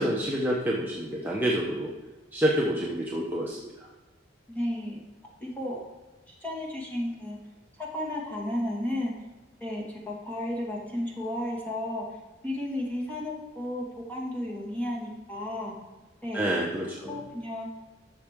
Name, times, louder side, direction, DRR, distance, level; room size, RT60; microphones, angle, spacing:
voice 1, 0.0-1.9 2.3-3.6 16.3-17.2, equal, 10° right, -4 dB, 0.9 m, -27 dB
voice 2, 4.5-5.0 5.4-5.8 6.3-7.4 7.8-9.1 9.6-12.1 12.4-15.7 16.2-16.5 17.1-17.7, left 1 dB, 10° left, -4 dB, 1.9 m, -33 dB
12.5 x 6.5 x 3.6 m, 1.1 s
head